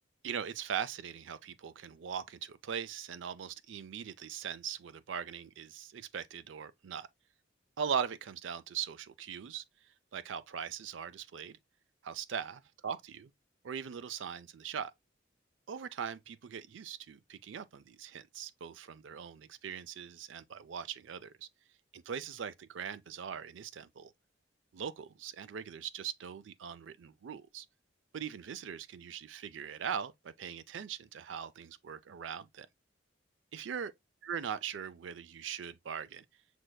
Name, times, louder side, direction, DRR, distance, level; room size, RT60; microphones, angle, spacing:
voice 1, 0.2-7.1 7.8-9.6 10.1-11.6 12.0-13.3 13.6-14.9 15.7-21.5 21.9-24.1 24.7-27.7 28.1-32.7 33.5-33.9 34.2-36.2, right 7 dB, 75° right, 0.4 m, -40 dB
6.1 x 3.2 x 2.2 m
head